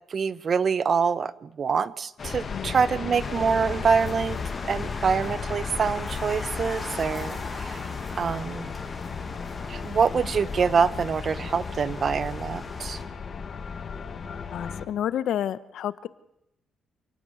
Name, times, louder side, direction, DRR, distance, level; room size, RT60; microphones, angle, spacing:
voice 1, 0.1-4.4 4.7-7.8 8.2-8.7 9.7-13.0, right 6 dB, 45° right, 17 dB, 0.9 m, -25 dB
sound 1, 2.2-14.9, left 5 dB, 45° left, 1.9 m, -35 dB
sound 2, 3.2-13.0, left 2 dB, 15° left, 5.9 m, -39 dB
voice 2, 14.5-16.1, left 10 dB, 75° left, 16 dB, 0.9 m, -30 dB
27.5 x 9.8 x 9.6 m, 0.87 s
cardioid pair, 90°, 0 cm